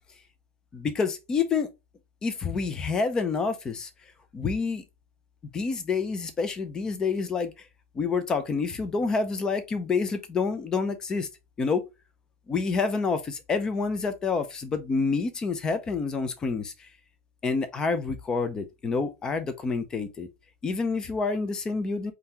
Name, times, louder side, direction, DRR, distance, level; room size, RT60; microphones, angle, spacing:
voice 1, 0.7-1.7 2.2-3.9 4.3-4.8 5.5-7.5 8.0-11.3 11.6-11.8 12.5-16.7 17.4-20.3 20.6-22.1, left 4 dB, 10° left, 0.4 m, -28 dB
4.3 x 3.8 x 2.7 m
supercardioid pair, 175°, 7 cm